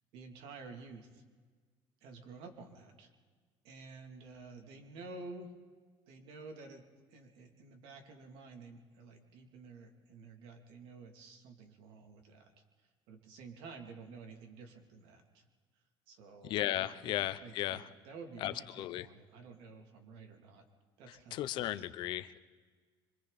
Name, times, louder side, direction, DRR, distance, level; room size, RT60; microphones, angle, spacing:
voice 1, 0.1-1.2 2.0-3.1 3.6-5.5 6.1-12.5 13.1-15.5 16.1-16.9 17.4-20.7 21.0-21.7, right 3 dB, 90° right, 4 dB, 2.9 m, -51 dB
voice 2, 16.4-17.9 18.4-19.1 21.1-22.4, left 14 dB, 60° left, 13 dB, 0.8 m, -36 dB
26.0 x 24.0 x 4.2 m, 1.5 s
cardioid pair, 160°, 9 cm